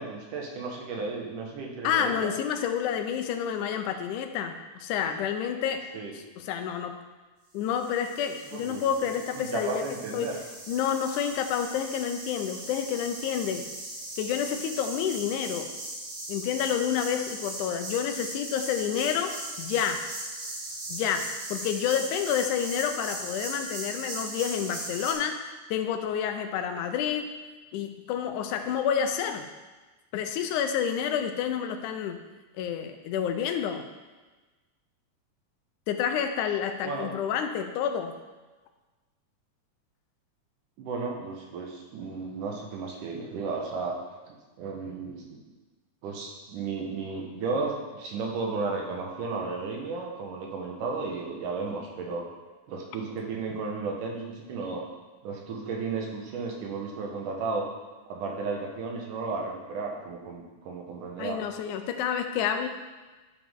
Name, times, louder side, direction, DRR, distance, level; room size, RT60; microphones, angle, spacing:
voice 1, 0.0-2.3 5.9-6.1 8.5-8.8 9.4-10.4 36.8-37.1 40.8-43.9 44.3-45.4 46.0-52.2 52.7-54.8 55.2-57.6 58.1-61.4, right 4 dB, 85° right, 0 dB, 2.8 m, -34 dB
voice 2, 1.8-5.9 6.1-7.0 7.5-9.8 10.1-10.3 10.7-13.6 14.2-15.7 16.3-19.3 19.6-20.0 20.9-21.3 21.5-27.3 27.7-29.5 30.1-32.2 32.6-33.9 35.9-38.1 61.2-62.7, left 8 dB, 80° left, 6 dB, 2.1 m, -29 dB
sound 1, 7.7-25.1, right 2 dB, 50° right, 1.9 m, -39 dB
11.5 x 5.1 x 3.7 m, 1.2 s
omnidirectional pair, 3.6 m